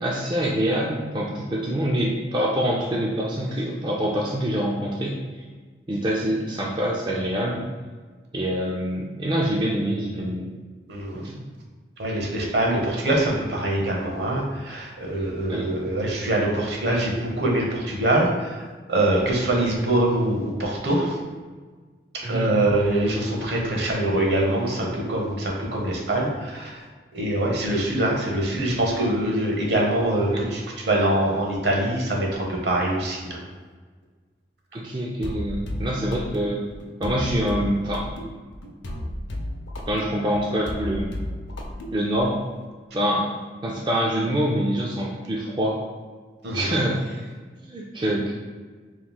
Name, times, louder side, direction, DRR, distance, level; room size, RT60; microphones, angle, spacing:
voice 1, 0.0-5.4 5.9-7.7 8.3-10.5 11.1-11.3 15.5-15.7 22.2-22.5 30.3-30.4 34.7-36.6 37.0-38.1 39.9-41.1 41.9-42.4 42.9-43.3 43.6-45.8 46.5-47.0 47.6-48.4, equal, 25° right, -3 dB, 0.4 m, -25 dB
voice 2, 10.9-11.2 12.0-18.6 18.9-21.2 22.2-26.8 27.1-33.4 46.4-46.7, right 1 dB, 70° right, -1 dB, 1.0 m, -24 dB
sound 1, 35.2-42.4, left 1 dB, 85° left, 0.6 m, -33 dB
5.4 x 3.1 x 2.3 m, 1.4 s
head